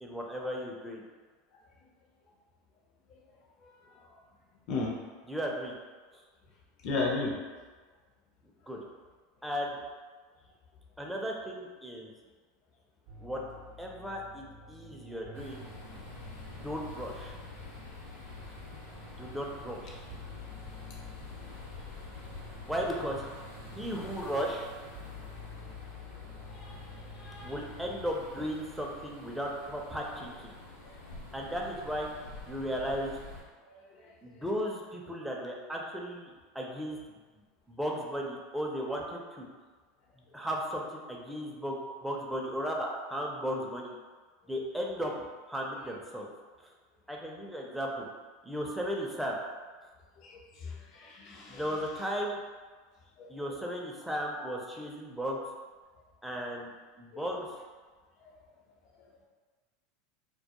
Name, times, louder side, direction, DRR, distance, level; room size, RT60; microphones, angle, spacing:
voice 1, 0.0-1.0 5.3-5.7 8.7-8.8 9.4-9.8 11.0-12.1 13.2-13.4 13.8-15.6 16.6-17.3 19.2-20.0 22.7-23.3 23.7-24.7 27.4-30.5 31.3-32.1 32.5-33.1 34.2-37.0 37.7-39.5 40.3-43.9 44.5-46.3 47.1-48.1 48.4-49.4 51.5-52.4 53.3-55.4 56.2-57.5, equal, 5° right, -2 dB, 0.4 m, -35 dB
voice 2, 6.8-7.3 19.2-19.3 23.8-23.9 26.5-26.8 27.2-27.5 33.6-34.1 50.2-51.7 53.2-53.3 57.1-57.2 58.2-58.3, left 3 dB, 55° left, -1 dB, 0.6 m, -36 dB
sound 1, 13.1-28.1, left 3 dB, 55° right, 0.6 m, -49 dB
sound 2, 15.3-33.4, left 2 dB, 85° left, 0.8 m, -48 dB
2.2 x 2.1 x 2.8 m, 1.4 s
hypercardioid pair, 95°, 0 cm